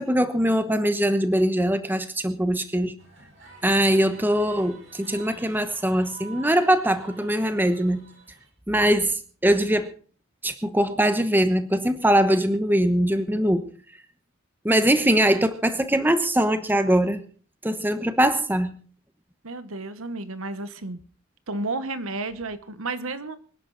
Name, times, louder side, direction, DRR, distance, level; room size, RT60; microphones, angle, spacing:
voice 1, 0.0-2.9 3.6-8.1 8.7-9.9 10.4-13.6 14.6-17.2 17.6-18.7, right 1 dB, 10° right, 10 dB, 1.1 m, -22 dB
sound 1, 3.0-8.5, right 3 dB, 55° right, 5.3 m, -48 dB
voice 2, 19.4-21.0 21.5-23.4, right 3 dB, 75° right, 12 dB, 1.2 m, -32 dB
25.5 x 11.0 x 4.0 m, 0.41 s
head